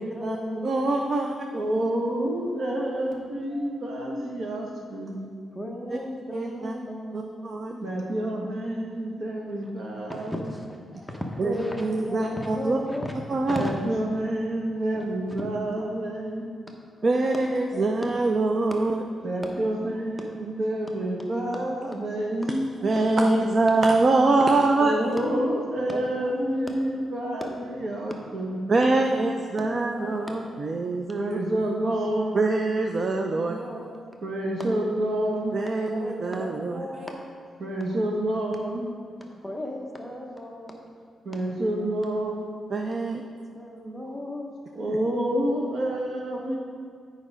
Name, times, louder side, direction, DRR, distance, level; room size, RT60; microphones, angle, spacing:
voice 1, 0.0-1.3 5.5-7.5 10.1-13.8 14.9-15.1 17.0-17.4 17.7-18.5 23.0-23.5 23.8-23.9 24.3-24.6 25.9-27.8 28.9-29.1 29.6-30.8 33.2-34.0 35.9-37.3 39.4-40.8 43.5-44.5, left 1 dB, 5° left, 0 dB, 0.8 m, -36 dB
voice 2, 0.6-1.3 5.9-6.0 6.3-6.7 7.1-7.8 11.4-12.8 13.3-13.6 17.0-19.0 22.8-25.1 28.7-31.4 32.3-33.6 35.5-36.9 42.7-43.2 44.9-45.0, right 2 dB, 40° right, 3 dB, 0.4 m, -24 dB
voice 3, 1.5-5.3 7.8-10.5 10.9-11.0 13.6-16.4 19.2-22.7 24.8-28.6 31.1-32.4 34.2-35.6 37.0-37.1 37.6-38.9 41.2-42.5 44.7-46.6, right 1 dB, 55° right, -1 dB, 1.4 m, -28 dB
8.7 x 5.1 x 5.1 m, 2.1 s
wide cardioid pair, 145°, 0 cm